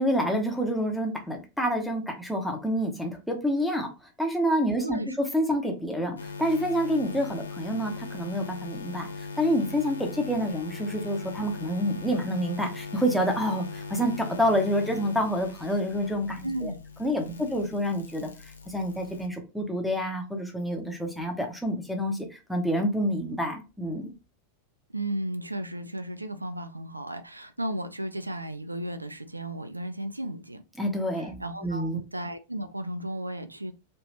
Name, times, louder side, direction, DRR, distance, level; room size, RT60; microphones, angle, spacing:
voice 1, 0.0-3.9 4.2-5.0 5.3-16.7 17.0-18.3 18.7-24.1 30.8-32.0, equal, ahead, 0.9 m, -28 dB
voice 2, 4.8-5.2 16.4-16.8 17.2-17.4 24.9-30.6 31.1-33.7, right 1 dB, 85° right, 0.3 m, -34 dB
sound 1, 6.2-19.3, left 4 dB, 75° left, 0.5 m, -40 dB
3.2 x 2.8 x 2.8 m
figure-of-eight pair, 90°, 0 cm